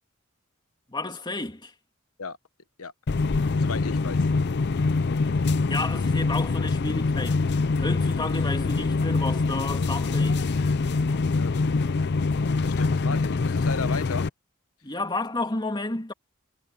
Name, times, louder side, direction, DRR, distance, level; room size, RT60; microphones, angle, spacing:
voice 1, 0.9-1.7 5.7-10.6 14.8-16.1, left 2 dB, 20° left, 2.5 m, -32 dB
sound 1, 3.1-14.3, left 3 dB, 50° left, 0.5 m, -24 dB
voice 2, 3.5-4.3 5.0-5.1 11.3-11.8 12.6-14.3, left 4 dB, 80° left, 1.1 m, -35 dB
head